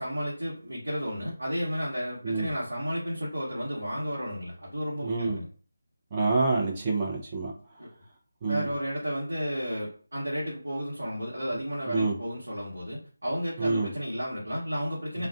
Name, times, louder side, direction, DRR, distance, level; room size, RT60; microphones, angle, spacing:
voice 1, 0.0-5.5 7.8-7.9 8.5-15.3, equal, 70° right, -6 dB, 0.9 m, -32 dB
voice 2, 5.0-5.4 6.1-7.5 8.4-8.7 11.9-12.1 13.6-13.9 15.2-15.3, right 3 dB, 25° right, -2 dB, 0.7 m, -27 dB
2.4 x 2.3 x 2.4 m, 0.42 s
figure-of-eight pair, 160°, 0 cm